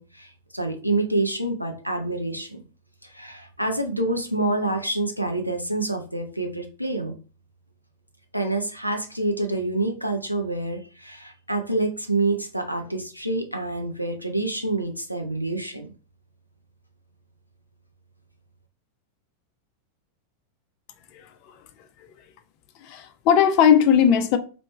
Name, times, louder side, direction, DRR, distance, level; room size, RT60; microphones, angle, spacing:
voice 1, 0.0-2.6 3.1-7.1 8.3-15.9, right 2 dB, 90° right, 0.7 m, -27 dB
voice 2, 21.1-21.5 22.8-24.4, left 8 dB, 40° left, 0.5 m, -19 dB
3.2 x 3.0 x 4.2 m
figure-of-eight pair, 90°, 0 cm